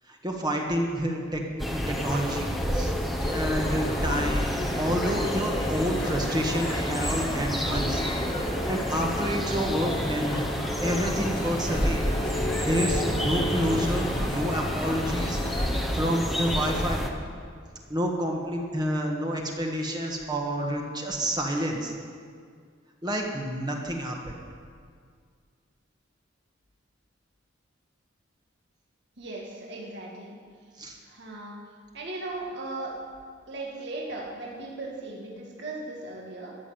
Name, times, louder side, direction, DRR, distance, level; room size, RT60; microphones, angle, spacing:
voice 1, 0.1-3.0 3.3-4.5 4.8-8.0 8.5-15.4 15.7-17.0 17.9-21.9 23.0-24.3 30.8-31.0, equal, 20° right, 0 dB, 1.5 m, -29 dB
sound 1, 1.6-17.1, equal, ahead, 1.0 m, -29 dB
sound 2, 3.2-15.9, left 1 dB, 25° left, 1.7 m, -34 dB
sound 3, 11.5-16.5, equal, 45° right, 4.2 m, -43 dB
voice 2, 29.2-30.4 31.0-31.6 31.9-32.9 33.5-36.6, right 2 dB, 60° right, -3 dB, 2.0 m, -37 dB
13.5 x 7.1 x 9.3 m, 2.1 s
head